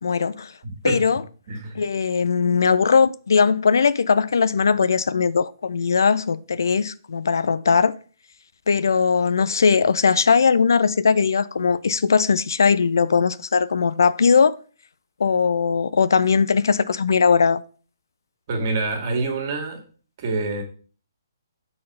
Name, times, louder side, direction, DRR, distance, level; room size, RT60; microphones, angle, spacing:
voice 1, 0.0-0.5 0.8-1.2 1.7-8.0 8.7-14.6 15.2-17.6, left 5 dB, 65° left, 0.4 m, -19 dB
voice 2, 0.6-1.0 1.5-1.8 18.5-19.8 20.2-20.6, right 3 dB, 40° right, 2.0 m, -26 dB
6.5 x 4.3 x 5.4 m
figure-of-eight pair, 130°, 2 cm